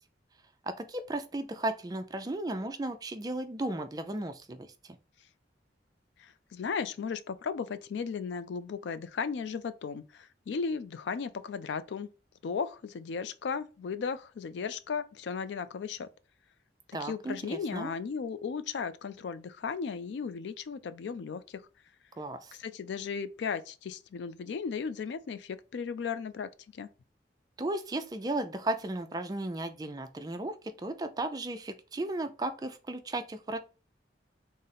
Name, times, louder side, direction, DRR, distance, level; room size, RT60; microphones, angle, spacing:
voice 1, 0.6-5.0 16.9-17.9 22.2-22.6 27.6-33.6, right 2 dB, 20° right, 0.3 m, -35 dB
voice 2, 6.2-12.1 12.4-16.1 17.0-21.6 22.6-26.9, left 5 dB, 75° left, 0.3 m, -36 dB
3.8 x 2.0 x 4.0 m
head